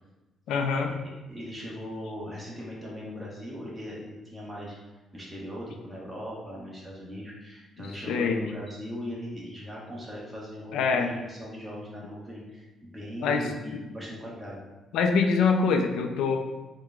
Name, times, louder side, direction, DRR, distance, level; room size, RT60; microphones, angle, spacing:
voice 1, 0.5-0.9 7.8-8.4 10.7-11.1 13.2-13.5 14.9-16.4, left 5 dB, 85° left, 4 dB, 0.4 m, -24 dB
voice 2, 1.3-4.7 5.1-14.6, equal, 10° right, -6 dB, 1.1 m, -39 dB
4.6 x 2.2 x 3.7 m, 1.1 s
cardioid pair, 90°, 0 cm